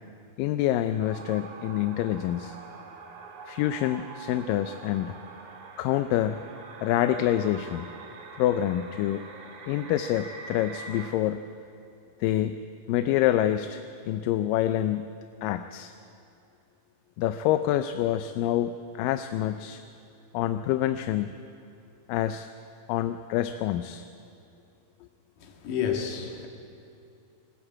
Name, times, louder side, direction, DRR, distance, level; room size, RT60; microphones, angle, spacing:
voice 1, 0.4-2.6 3.5-5.1 5.8-6.4 6.8-7.9 8.4-9.2 9.7-11.4 12.2-12.6 12.9-15.1 15.4-15.9 17.2-19.8 20.3-21.3 22.1-22.5 22.9-24.0, left 12 dB, 80° left, 9 dB, 2.2 m, -27 dB
sound 1, 1.0-11.1, right 4 dB, 70° right, 3.3 m, -44 dB
voice 2, 25.4-26.5, left 8 dB, 65° left, 2 dB, 3.3 m, -30 dB
20.5 x 16.5 x 8.7 m, 2.7 s
omnidirectional pair, 4.1 m